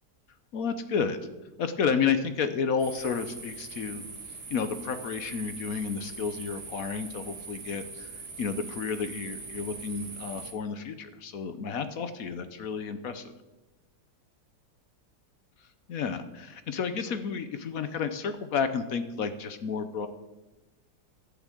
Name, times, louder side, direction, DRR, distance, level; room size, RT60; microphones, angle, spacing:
voice 1, 0.5-1.2 1.6-4.0 4.5-8.1 8.4-13.2 15.9-20.1, left 6 dB, 60° left, 10 dB, 1.2 m, -31 dB
sound 1, 2.8-10.5, right 4 dB, 65° right, 2.4 m, -42 dB
13.5 x 7.3 x 7.7 m, 1.1 s
omnidirectional pair, 1.8 m